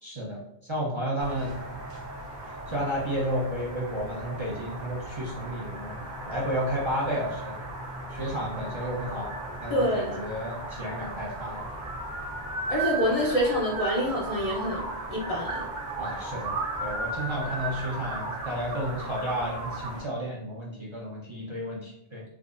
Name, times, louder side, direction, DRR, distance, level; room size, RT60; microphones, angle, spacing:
voice 1, 0.0-1.6 2.7-7.6 8.1-9.3 9.6-11.7 16.0-16.5 16.8-22.2, equal, 30° right, -4 dB, 0.7 m, -32 dB
sound 1, 1.2-20.0, right 2 dB, 60° right, 1.2 m, -36 dB
voice 2, 9.7-10.2 12.7-15.6, equal, 40° left, -4 dB, 0.7 m, -26 dB
3.6 x 3.0 x 2.5 m, 0.81 s
omnidirectional pair, 1.1 m